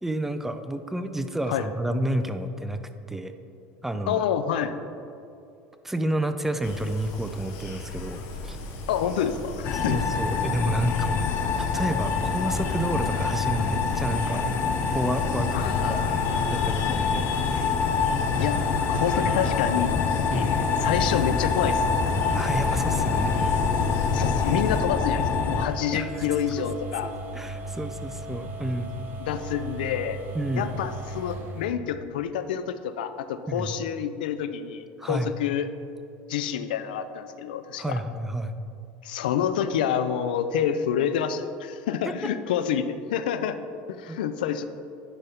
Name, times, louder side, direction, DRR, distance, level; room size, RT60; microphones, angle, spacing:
voice 1, 0.0-2.8 3.1-3.3 3.8-4.3 5.8-8.6 9.7-11.3 11.6-14.4 14.9-16.2 16.5-17.3 20.3-20.6 22.3-23.7 25.9-26.3 27.0-29.0 30.3-30.7 33.5-33.7 35.0-35.3 37.8-38.5 42.0-42.1 44.1-44.2, right 1 dB, 5° right, 9 dB, 0.5 m, -30 dB
voice 2, 4.1-4.7 8.9-10.0 15.5-17.0 18.4-19.9 20.3-20.5 20.8-21.8 24.1-27.1 29.2-30.2 30.6-35.7 36.3-38.0 39.0-43.6 43.9-44.6, left 8 dB, 90° left, 11 dB, 0.4 m, -28 dB
sound 1, 6.6-24.8, left 3 dB, 65° left, 1.1 m, -36 dB
sound 2, 9.6-25.7, left 6 dB, 40° left, 0.6 m, -26 dB
sound 3, 12.1-31.7, right 2 dB, 40° right, 0.8 m, -37 dB
9.9 x 5.7 x 3.5 m, 2.6 s
supercardioid pair, 110°, 5 cm